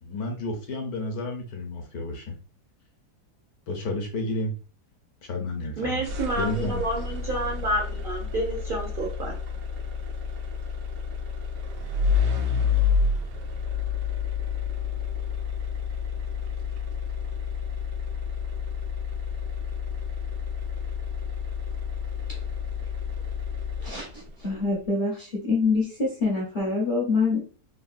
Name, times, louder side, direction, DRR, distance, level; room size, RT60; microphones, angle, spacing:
voice 1, 0.0-2.3 3.7-4.5 5.2-6.0 6.3-6.8, left 2 dB, 70° left, 2 dB, 1.2 m, -31 dB
voice 2, 5.8-9.3, right 1 dB, 70° right, -2 dB, 0.5 m, -29 dB
sound 1, 6.0-24.3, left 6 dB, 90° right, 1.2 m, -29 dB
voice 3, 23.8-27.4, left 3 dB, 50° left, -4 dB, 0.6 m, -26 dB
3.5 x 2.1 x 2.4 m, 0.38 s
omnidirectional pair, 1.7 m